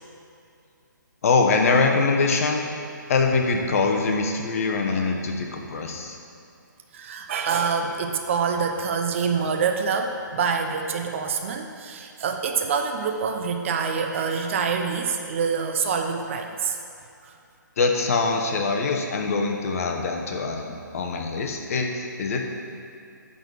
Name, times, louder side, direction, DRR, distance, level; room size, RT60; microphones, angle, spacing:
voice 1, 1.2-2.6 3.1-6.2 17.8-22.5, left 4 dB, 45° left, 2 dB, 1.1 m, -23 dB
voice 2, 6.9-16.8, right 5 dB, 40° right, 4 dB, 0.7 m, -26 dB
10.0 x 4.1 x 7.3 m, 2.5 s
hypercardioid pair, 145°, 11 cm